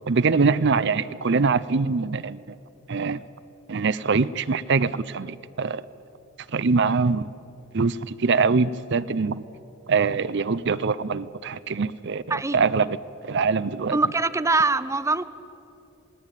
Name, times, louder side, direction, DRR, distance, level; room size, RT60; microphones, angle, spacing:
voice 1, 0.0-2.6 2.9-3.2 3.7-5.8 6.5-7.2 7.7-9.4 9.9-13.0 13.2-14.0, right 4 dB, 60° right, 16 dB, 0.6 m, -23 dB
voice 2, 13.9-15.2, right 3 dB, 15° right, 14 dB, 0.6 m, -23 dB
27.0 x 19.0 x 9.0 m, 2.9 s
head